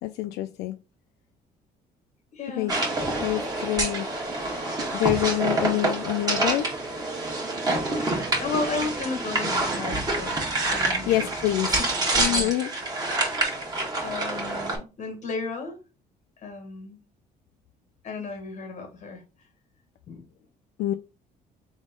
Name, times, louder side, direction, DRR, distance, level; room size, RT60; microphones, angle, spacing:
voice 1, 0.0-0.8 2.6-2.7 3.2-4.1 4.9-6.7 11.1-11.8 12.2-12.7 20.8-20.9, left 15 dB, 80° left, 0.4 m, -26 dB
voice 2, 2.3-2.7 8.4-10.3 10.7-11.3 11.7-12.6 13.0-13.3 14.0-15.8 16.4-17.0 18.0-19.2 20.1-20.3, left 4 dB, 45° left, 1.6 m, -34 dB
sound 1, 2.7-14.8, right 2 dB, 20° right, 1.5 m, -27 dB
3.7 x 3.1 x 3.7 m
cardioid pair, 110°, 17 cm